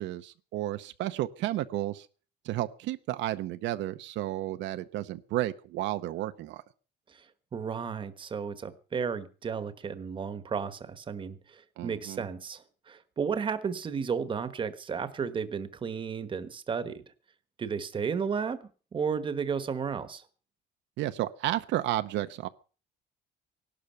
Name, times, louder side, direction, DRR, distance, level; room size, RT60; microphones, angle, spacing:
voice 1, 0.0-2.1 2.4-6.6 11.8-12.3 21.0-22.5, right 14 dB, 75° right, 0.8 m, -32 dB
voice 2, 7.5-17.0 17.6-20.2, right 6 dB, 25° right, 1.3 m, -33 dB
17.5 x 12.0 x 5.7 m
cardioid pair, 160°, 19 cm